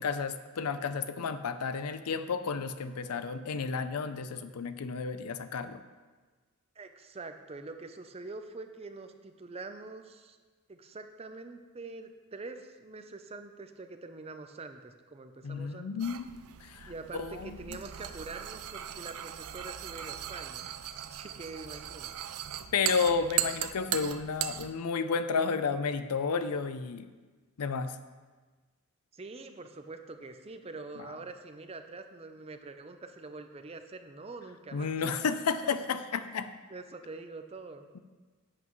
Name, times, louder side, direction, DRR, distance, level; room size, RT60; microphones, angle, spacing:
voice 1, 0.0-5.8 15.4-16.3 16.6-17.6 22.7-27.1 27.6-28.0 34.7-36.5, left 5 dB, 85° left, 11 dB, 0.5 m, -32 dB
voice 2, 6.8-10.4 10.7-16.1 16.9-20.6 21.1-22.2 29.1-34.9 35.6-36.0 36.7-37.9, right 3 dB, 25° right, 7 dB, 0.5 m, -45 dB
sound 1, 16.0-24.7, right 11 dB, 75° right, 0.4 m, -38 dB
11.0 x 8.5 x 3.1 m, 1.4 s
head